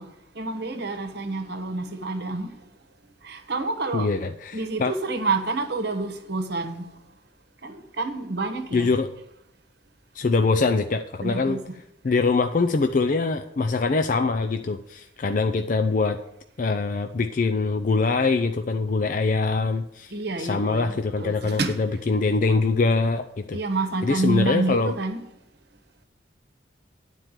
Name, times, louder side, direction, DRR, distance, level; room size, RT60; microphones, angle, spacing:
voice 1, 0.0-2.6 3.2-4.1 4.5-6.9 7.6-8.9 11.2-11.8 12.1-12.2 20.1-22.0 23.5-25.2, right 3 dB, 55° right, 1.1 m, -28 dB
voice 2, 3.9-4.9 8.7-9.1 10.1-11.6 12.0-16.2 16.6-23.6 24.0-24.9, left 3 dB, 40° left, 0.4 m, -23 dB
10.5 x 4.5 x 8.1 m
head